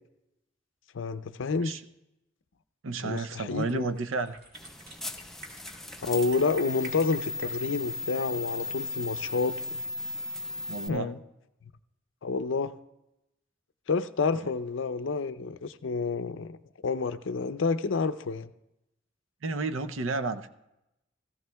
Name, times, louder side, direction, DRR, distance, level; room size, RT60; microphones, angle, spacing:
voice 1, 0.9-1.7 3.0-3.9 6.0-9.8 10.9-11.2 12.2-12.7 13.9-16.6 16.8-18.5, left 4 dB, 70° left, 11 dB, 0.5 m, -29 dB
voice 2, 2.8-4.4 10.7-11.1 19.4-20.5, right 3 dB, 80° right, 11 dB, 0.6 m, -31 dB
sound 1, 3.6-9.6, right 2 dB, 55° right, 2.2 m, -50 dB
sound 2, 4.5-10.9, left 2 dB, ahead, 0.4 m, -36 dB
17.0 x 15.0 x 2.3 m, 0.89 s
head